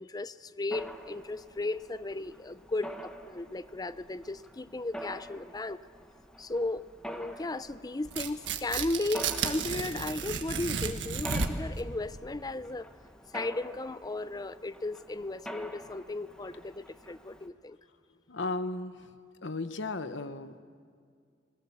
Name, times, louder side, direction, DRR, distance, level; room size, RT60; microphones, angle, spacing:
voice 1, 0.0-5.8 6.4-12.9 13.3-17.8, left 2 dB, 20° left, 15 dB, 0.5 m, -35 dB
Mechanisms, 0.7-17.5, right 1 dB, 5° left, 1.3 m, -47 dB
Tearing, 8.1-11.8, right 5 dB, 85° right, 1.6 m, -33 dB
voice 2, 18.3-19.1 19.4-20.6, left 3 dB, 80° left, 11 dB, 1.1 m, -35 dB
29.5 x 21.5 x 7.2 m, 2.1 s
head